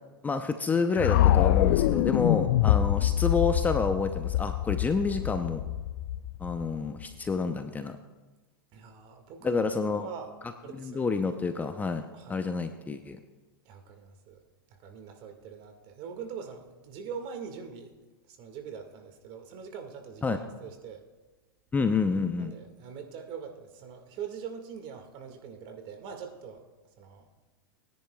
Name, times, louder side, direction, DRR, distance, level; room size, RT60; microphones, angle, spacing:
voice 1, 0.2-5.6 6.4-8.0 9.4-10.0 10.7-12.0 12.3-13.2 20.2-20.4 21.7-22.5, left 4 dB, 15° left, 7 dB, 0.6 m, -28 dB
sound 1, 1.0-7.0, left 14 dB, 55° left, 0.4 m, -25 dB
voice 2, 8.7-10.3 10.6-11.2 12.1-12.4 13.7-14.4 14.8-17.9 18.3-21.0 22.4-26.6 27.0-27.3, right 7 dB, 45° right, 5 dB, 1.8 m, -43 dB
19.5 x 10.5 x 2.3 m, 1.2 s
hypercardioid pair, 115°, 12 cm